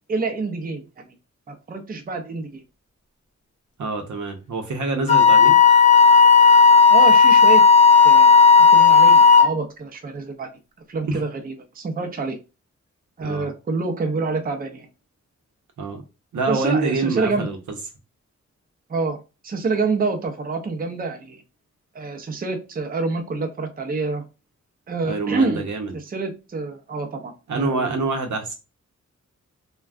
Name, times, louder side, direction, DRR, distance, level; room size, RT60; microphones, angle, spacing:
voice 1, 0.1-1.1 1.5-2.6 6.9-7.6 8.0-8.3 8.7-10.5 10.9-12.4 13.2-14.9 16.5-17.5 18.9-19.2 19.4-21.4 21.9-24.2 24.9-25.7 25.9-28.2, right 3 dB, 30° right, 0.5 m, -27 dB
voice 2, 3.8-5.6 11.1-11.2 13.2-13.5 15.8-16.0 16.3-17.6 25.0-25.9 27.5-28.6, right 3 dB, 90° right, 0.8 m, -26 dB
Wind instrument woodwind instrument, 5.1-9.5, left 5 dB, 25° left, 0.5 m, -12 dB
3.5 x 2.2 x 2.4 m
wide cardioid pair, 140°, 29 cm